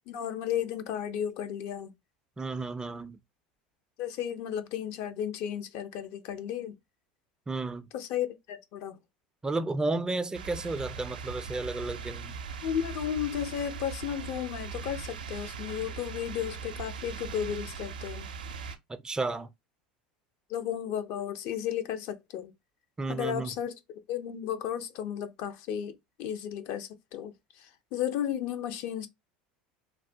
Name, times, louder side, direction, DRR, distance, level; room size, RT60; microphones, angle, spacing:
voice 1, 0.1-1.9 4.0-6.8 7.9-9.0 12.6-18.3 20.5-22.5 23.1-29.1, left 9 dB, 60° left, 0.6 m, -34 dB
voice 2, 2.4-3.2 7.5-7.9 9.4-12.3 18.9-19.5 23.0-23.5, right 3 dB, 15° right, 0.3 m, -32 dB
sound 1, 10.3-18.8, right 5 dB, 85° right, 0.4 m, -40 dB
3.1 x 2.1 x 2.7 m
hypercardioid pair, 80°, 4 cm